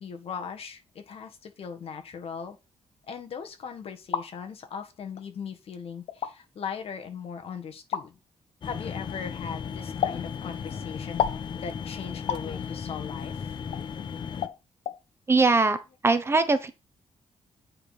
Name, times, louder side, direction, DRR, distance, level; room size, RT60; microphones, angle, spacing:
voice 1, 0.0-2.6 3.1-8.2 8.6-13.5, left 6 dB, 60° left, 1.7 m, -39 dB
sound 1, 3.8-4.3 5.2-5.3 6.1-6.3 7.9-8.1 10.0-10.2 11.2-11.4 12.3-12.5 13.7-13.8 14.4-14.6 14.8-15.0, left 9 dB, 75° left, 0.9 m, -29 dB
sound 2, 8.6-14.5, left 7 dB, 45° left, 0.8 m, -36 dB
voice 2, 15.3-15.8 16.0-16.7, right 3 dB, 20° right, 0.9 m, -21 dB
8.9 x 5.1 x 4.2 m
cardioid pair, 140°, 11 cm